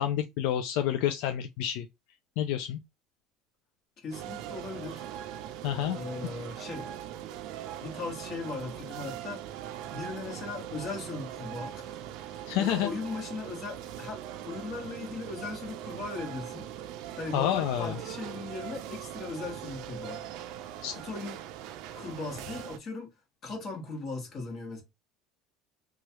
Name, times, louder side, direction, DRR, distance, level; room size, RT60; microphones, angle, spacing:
voice 1, 0.0-1.9 2.4-2.8 5.6-6.0 12.5-12.9 17.3-18.0 20.8-21.0, left 11 dB, 75° left, 0.3 m, -28 dB
voice 2, 4.0-5.1 5.9-6.9 7.8-9.5 9.9-12.1 12.3-16.7 17.1-20.3 20.9-21.4 21.9-23.1 23.4-24.8, left 3 dB, 40° left, 1.4 m, -38 dB
sound 1, 4.1-22.8, right 11 dB, 65° right, 0.4 m, -41 dB
3.1 x 2.3 x 2.9 m
cardioid pair, 130°, 0 cm